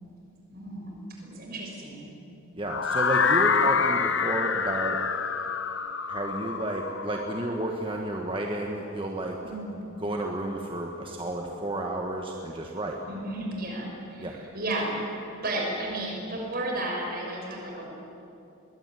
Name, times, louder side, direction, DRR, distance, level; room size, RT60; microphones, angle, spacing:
voice 1, 0.5-2.1 3.6-3.7 9.4-9.8 13.1-17.9, right 1 dB, 45° right, -1 dB, 6.4 m, -33 dB
voice 2, 2.6-5.0 6.1-9.4 10.0-13.0 14.2-14.4, right 1 dB, 25° right, 1 dB, 1.5 m, -31 dB
sound 1, 2.7-8.6, left 6 dB, 55° left, 1.1 m, -27 dB
22.0 x 21.0 x 10.0 m, 2.8 s
head